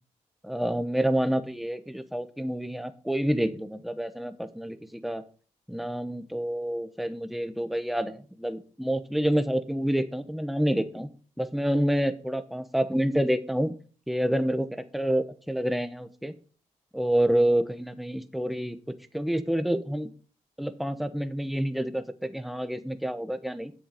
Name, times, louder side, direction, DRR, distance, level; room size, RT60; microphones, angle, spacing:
voice 1, 0.4-5.2 5.7-11.1 11.4-13.8 14.1-16.3 16.9-18.8 19.1-20.1 20.6-23.7, equal, ahead, 11 dB, 1.0 m, -28 dB
7.8 x 7.3 x 5.5 m, 0.39 s
cardioid pair, 80°, 13 cm